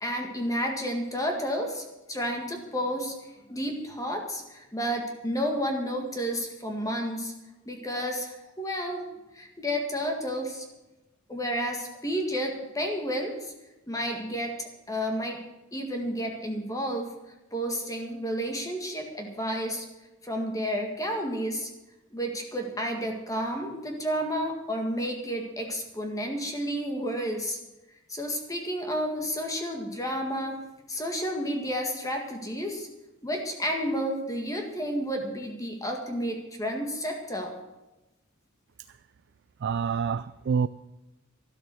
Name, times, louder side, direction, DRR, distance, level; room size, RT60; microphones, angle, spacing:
voice 1, 0.0-3.1 3.5-7.3 7.7-9.0 9.3-10.7 11.3-13.5 13.9-15.4 15.7-17.1 17.5-19.9 20.2-21.7 22.1-27.6 28.1-30.6 30.9-32.9 33.2-37.5, equal, 15° left, 2 dB, 1.9 m, -31 dB
voice 2, 39.6-40.7, right 6 dB, 60° right, 13 dB, 0.4 m, -27 dB
12.5 x 12.5 x 6.3 m, 1.0 s
head